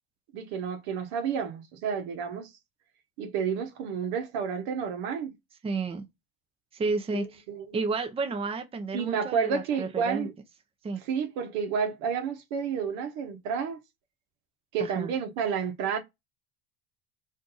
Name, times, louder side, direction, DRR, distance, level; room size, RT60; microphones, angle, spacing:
voice 1, 0.3-2.5 3.2-5.4 7.1-7.8 8.9-10.3 11.0-13.8 14.7-16.0, right 6 dB, 65° right, 0.9 m, -30 dB
voice 2, 5.6-6.0 6.7-7.2 7.7-10.3 10.8-11.0 14.8-15.1, right 4 dB, 20° right, 0.6 m, -31 dB
2.6 x 2.5 x 3.7 m
supercardioid pair, 95°, 32 cm